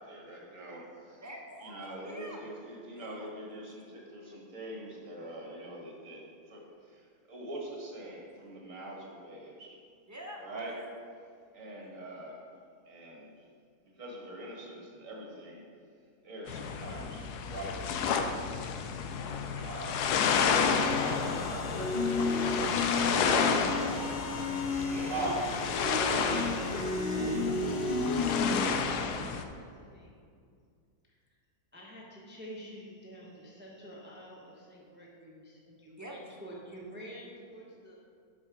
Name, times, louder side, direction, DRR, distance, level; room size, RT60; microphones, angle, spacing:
voice 1, 0.0-1.2 1.6-9.8 10.4-10.8 11.5-12.5 12.9-13.5 14.0-15.6 16.2-18.6 19.6-22.9 23.1-24.3 25.1-25.5 26.0-26.2, right 1 dB, 55° right, -2 dB, 1.9 m, -43 dB
voice 2, 1.2-2.4 2.9-3.3 10.1-10.8 19.3-19.8 23.7-23.9 24.8-25.2 36.0-36.1, right 1 dB, 25° right, -2 dB, 0.4 m, -46 dB
sound 1, 16.5-29.4, left 6 dB, 80° left, 1.1 m, -31 dB
sound 2, 20.6-28.6, left 2 dB, 50° left, 1.0 m, -32 dB
voice 3, 25.8-30.2 31.1-31.2 31.7-38.0, right 1 dB, 10° right, -4 dB, 0.8 m, -47 dB
7.2 x 5.3 x 4.9 m, 2.2 s
omnidirectional pair, 1.7 m